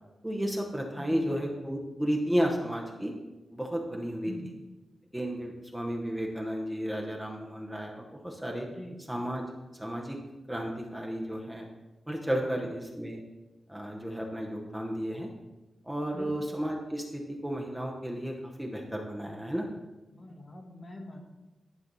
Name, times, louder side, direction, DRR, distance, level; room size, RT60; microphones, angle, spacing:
voice 1, 0.2-3.1 3.5-4.3 5.1-8.7 9.1-9.4 9.7-10.2 10.5-11.7 12.1-13.2 13.7-15.3 15.8-19.7, equal, 5° right, 0 dB, 0.9 m, -33 dB
voice 2, 1.0-1.5 4.2-4.5 8.7-9.0 12.4-12.6 16.1-16.5 20.1-21.2, left 1 dB, 35° left, 2 dB, 1.3 m, -44 dB
11.0 x 5.1 x 4.0 m, 1.1 s
wide cardioid pair, 120°, 0 cm